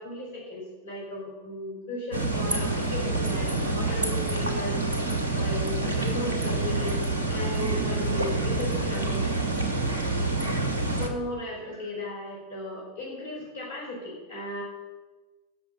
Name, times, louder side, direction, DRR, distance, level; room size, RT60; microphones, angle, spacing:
voice 1, 0.0-4.8 5.3-9.3 10.9-14.6, left 1 dB, 65° left, -3 dB, 4.9 m, -36 dB
sound 1, 2.1-11.1, right 2 dB, 70° right, 1.6 m, -27 dB
15.5 x 6.7 x 6.8 m, 1.3 s
figure-of-eight pair, 90°, 0 cm